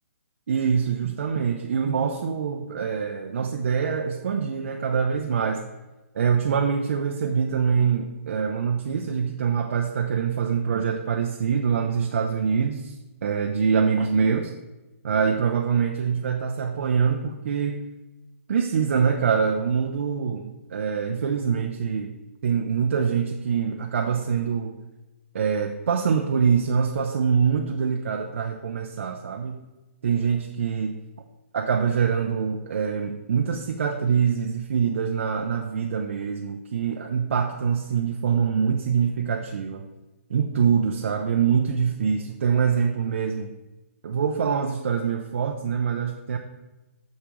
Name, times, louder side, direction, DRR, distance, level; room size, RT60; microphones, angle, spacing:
voice 1, 0.5-5.6 6.1-12.9 13.2-14.5 15.0-17.8 18.5-24.7 25.3-29.6 30.0-30.9 31.5-39.9 40.3-43.5 44.0-46.4, right 6 dB, 65° right, 3 dB, 0.6 m, -24 dB
6.7 x 6.6 x 3.1 m, 1.1 s
hypercardioid pair, 150°, 8 cm